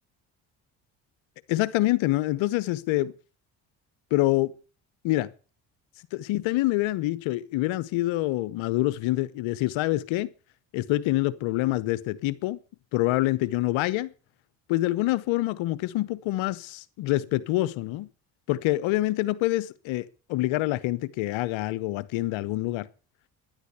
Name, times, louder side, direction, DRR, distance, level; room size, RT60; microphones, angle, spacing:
voice 1, 1.5-3.1 4.1-4.5 5.0-5.3 6.1-10.3 10.7-12.6 12.9-14.1 14.7-18.1 18.5-22.9, left 17 dB, 75° left, 1.1 m, -26 dB
12.0 x 10.5 x 8.1 m
hypercardioid pair, 55°, 47 cm